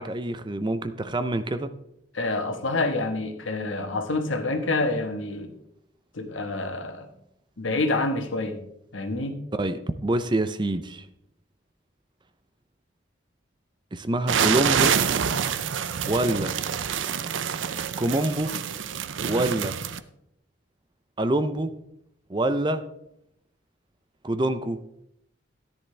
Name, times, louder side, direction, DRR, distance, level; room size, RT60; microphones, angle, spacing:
voice 1, 0.0-1.7 9.5-11.0 13.9-14.9 16.1-16.5 18.0-18.5 19.2-19.8 21.2-21.7 22.3-22.8 24.2-24.8, right 1 dB, 25° right, 11 dB, 0.5 m, -26 dB
voice 2, 2.1-5.5 6.1-7.1 7.6-8.6 8.9-9.4, left 2 dB, 80° left, 6 dB, 1.4 m, -27 dB
sound 1, 14.3-20.0, right 7 dB, 75° right, 0.5 m, -26 dB
13.5 x 10.0 x 3.3 m, 0.76 s
head